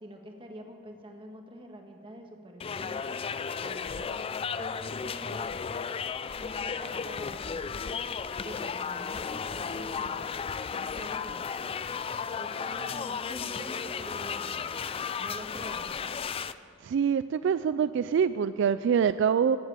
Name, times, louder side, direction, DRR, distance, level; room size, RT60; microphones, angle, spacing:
voice 1, 0.0-3.2 3.6-4.2 4.6-5.6 6.4-8.0 8.4-10.3 10.7-11.4 12.3-14.8 15.2-16.0, equal, 25° right, 3 dB, 1.6 m, -45 dB
sound 1, 2.6-16.5, left 6 dB, 30° left, 0.3 m, -34 dB
voice 2, 16.8-19.6, right 7 dB, 65° right, 13 dB, 0.3 m, -25 dB
17.0 x 8.0 x 7.5 m, 2.4 s
head